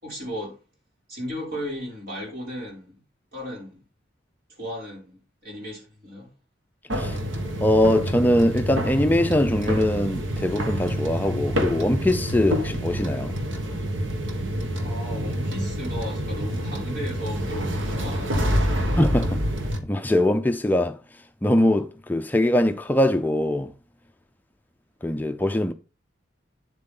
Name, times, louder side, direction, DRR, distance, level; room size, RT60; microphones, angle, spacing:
voice 1, 0.0-0.6 1.1-2.9 3.3-3.8 4.5-6.3 14.8-19.0, equal, 50° right, 5.9 m, -35 dB
sound 1, 6.9-19.8, equal, 85° right, 1.5 m, -27 dB
voice 2, 7.6-13.3 19.0-19.4 19.8-21.0 21.4-23.7 25.0-25.7, left 1 dB, 10° left, 0.4 m, -22 dB
9.7 x 7.6 x 3.8 m
head